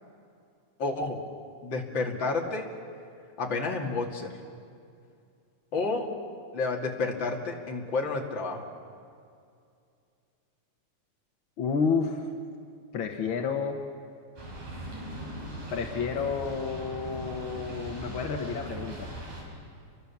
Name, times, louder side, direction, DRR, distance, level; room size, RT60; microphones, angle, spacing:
voice 1, 0.8-1.2 1.6-2.7 3.4-4.3 5.7-6.1 6.5-8.6, left 3 dB, 40° left, 1 dB, 2.7 m, -30 dB
voice 2, 11.6-12.3 12.9-13.8 15.7-19.1, left 5 dB, 55° left, 3 dB, 1.4 m, -30 dB
sound 1, 14.4-19.4, right 1 dB, 70° right, 7.2 m, -40 dB
29.0 x 24.0 x 7.1 m, 2.4 s
omnidirectional pair, 3.8 m